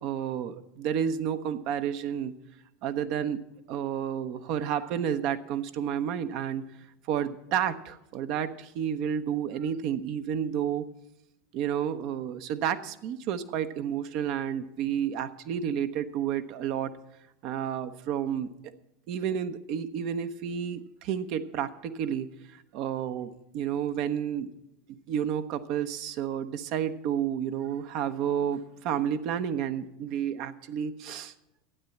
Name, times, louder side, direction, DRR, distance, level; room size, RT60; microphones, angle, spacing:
voice 1, 0.0-2.3 2.8-3.4 3.7-6.7 7.1-10.9 11.5-16.9 17.4-18.5 19.1-22.3 22.7-24.5 24.9-31.3, right 9 dB, 55° right, 10 dB, 0.9 m, -31 dB
12.5 x 9.4 x 7.2 m, 0.86 s
hypercardioid pair, 80°, 0 cm